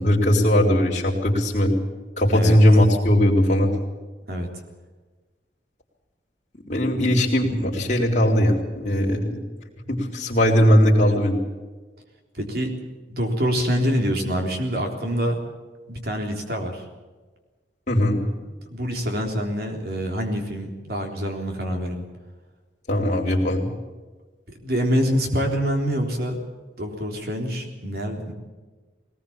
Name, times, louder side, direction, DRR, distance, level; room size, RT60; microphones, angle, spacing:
voice 1, 0.0-1.7 2.2-3.7 6.7-9.4 9.9-11.4 17.9-18.2 22.9-23.7, equal, 40° left, -1 dB, 4.0 m, -19 dB
voice 2, 12.3-12.7 13.1-15.4 15.9-16.8 18.4-22.1 24.6-26.4 26.8-28.3, equal, 55° right, 3 dB, 3.7 m, -26 dB
20.5 x 19.5 x 7.4 m, 1.3 s
head